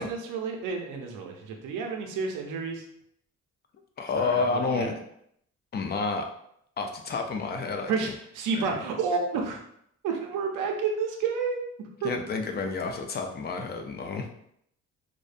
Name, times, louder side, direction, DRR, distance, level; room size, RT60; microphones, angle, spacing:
voice 1, 0.0-2.8 4.2-4.9 7.9-9.6 10.0-11.6 12.0-12.1, right 5 dB, 85° right, 2 dB, 0.6 m, -30 dB
voice 2, 4.0-4.9 5.7-6.2 6.8-8.1 8.5-8.8 12.0-14.3, left 4 dB, 35° left, 4 dB, 0.4 m, -30 dB
2.6 x 2.1 x 2.5 m, 0.71 s
cardioid pair, 90°, 30 cm